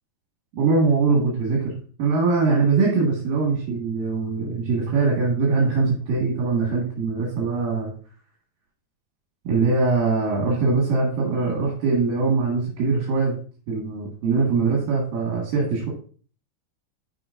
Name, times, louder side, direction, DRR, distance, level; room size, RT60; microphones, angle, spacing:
voice 1, 0.5-1.7 2.0-7.9 9.4-13.4 13.7-15.9, right 4 dB, 80° right, -3 dB, 3.6 m, -22 dB
12.0 x 5.1 x 2.5 m, 0.41 s
omnidirectional pair, 4.0 m